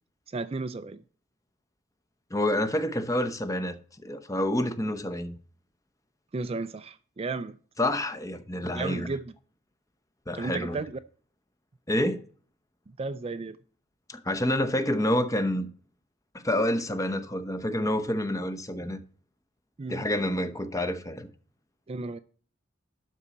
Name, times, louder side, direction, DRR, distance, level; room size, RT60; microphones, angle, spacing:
voice 1, 0.3-1.0 6.3-7.6 8.7-9.3 10.3-11.0 13.0-13.6 19.8-20.1 21.9-22.2, right 3 dB, 30° right, 0.4 m, -33 dB
voice 2, 2.3-3.8 4.0-5.3 7.8-9.1 10.3-10.8 11.9-12.2 14.1-15.7 16.3-19.0 19.9-21.3, left 1 dB, 15° left, 0.9 m, -28 dB
12.0 x 4.2 x 7.1 m
head